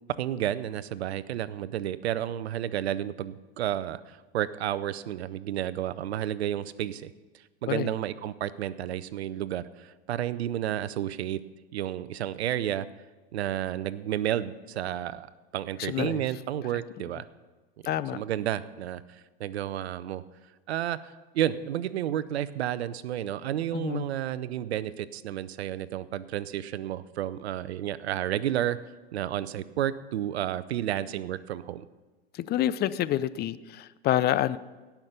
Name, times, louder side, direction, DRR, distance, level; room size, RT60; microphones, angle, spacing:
voice 1, 0.2-7.1 7.6-11.4 11.7-12.9 13.3-15.3 15.5-17.3 18.1-19.0 19.4-20.2 20.7-28.8 29.1-31.9, right 11 dB, 80° right, 16 dB, 0.6 m, -31 dB
voice 2, 15.8-16.2 17.8-18.2 23.7-24.0 32.3-34.6, left 12 dB, 30° left, 16 dB, 0.5 m, -28 dB
17.5 x 5.9 x 6.8 m, 1.3 s
hypercardioid pair, 90°, 32 cm